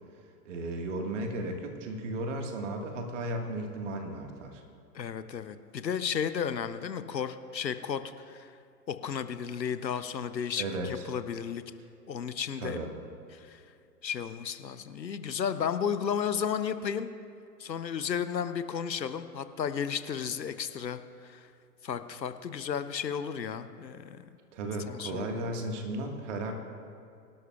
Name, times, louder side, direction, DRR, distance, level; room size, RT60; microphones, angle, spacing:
voice 1, 0.4-4.6 10.6-11.0 12.6-12.9 24.5-26.5, right 1 dB, 45° right, 3 dB, 1.8 m, -35 dB
voice 2, 4.9-8.5 8.9-11.6 12.1-12.8 13.3-13.6 14.0-17.1 17.6-21.5 21.8-24.3 24.9-25.3, left 7 dB, 80° left, 11 dB, 0.8 m, -33 dB
24.5 x 12.0 x 2.4 m, 2.5 s
figure-of-eight pair, 115°, 50 cm